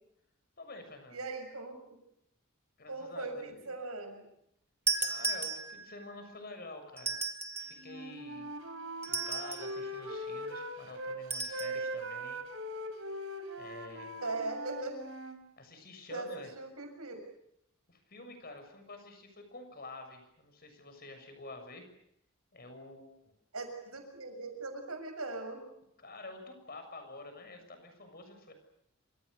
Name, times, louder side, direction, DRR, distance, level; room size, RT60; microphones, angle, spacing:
voice 1, 0.6-1.2 2.8-3.7 5.0-7.2 7.7-8.5 9.1-12.4 13.6-14.1 15.6-16.5 17.9-21.9 22.5-23.1 26.0-28.5, left 2 dB, 45° left, 7 dB, 6.9 m, -48 dB
voice 2, 1.1-2.0 2.9-4.2 14.2-15.0 16.1-16.3 16.6-17.2 23.5-25.6, right 3 dB, 85° right, 6 dB, 6.9 m, -39 dB
sound 1, 4.9-6.0 7.0-7.8 9.0-9.8 11.3-11.8, right 4 dB, 10° right, 2.0 m, -34 dB
Wind instrument woodwind instrument, 7.8-11.2 11.5-15.4, right 1 dB, 65° right, 4.0 m, -40 dB
27.5 x 26.5 x 6.7 m, 0.75 s
head